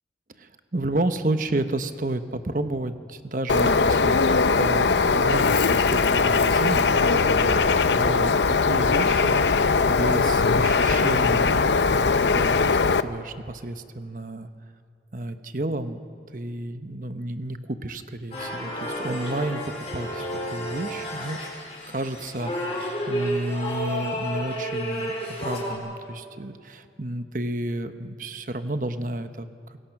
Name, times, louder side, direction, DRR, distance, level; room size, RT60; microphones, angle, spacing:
voice 1, 0.4-14.5 15.1-16.0 16.3-21.4 21.9-29.8, right 1 dB, 50° right, 9 dB, 1.0 m, -31 dB
Bird, 3.5-13.0, left 4 dB, 85° left, 0.7 m, -20 dB
sound 1, 18.3-25.7, equal, 35° left, 5.4 m, -31 dB
26.5 x 21.0 x 6.0 m, 2.3 s
head